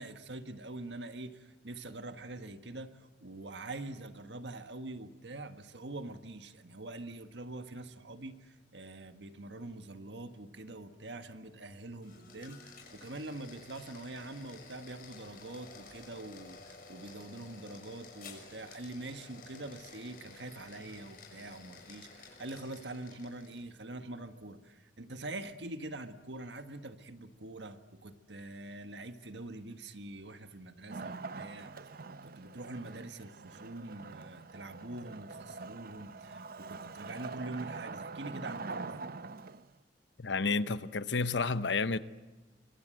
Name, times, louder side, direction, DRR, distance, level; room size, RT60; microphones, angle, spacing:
voice 1, 0.0-31.7 32.2-39.0, right 2 dB, 75° right, 1.6 m, -44 dB
sound 1, 11.9-23.7, left 4 dB, 55° left, 6.6 m, -53 dB
Wood, 30.9-39.8, right 3 dB, 55° right, 0.8 m, -44 dB
voice 2, 40.2-42.0, left 4 dB, 85° left, 0.9 m, -30 dB
26.5 x 25.5 x 7.8 m
head